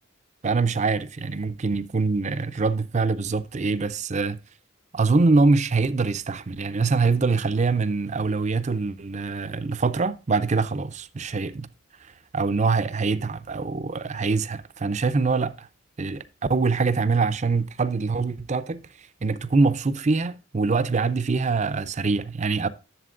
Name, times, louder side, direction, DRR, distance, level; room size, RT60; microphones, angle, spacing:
voice 1, 0.4-4.4 4.9-11.7 12.3-15.7 16.0-16.2 16.5-18.8 19.2-22.7, right 4 dB, 35° right, 0.5 m, -24 dB
11.0 x 7.3 x 2.5 m
head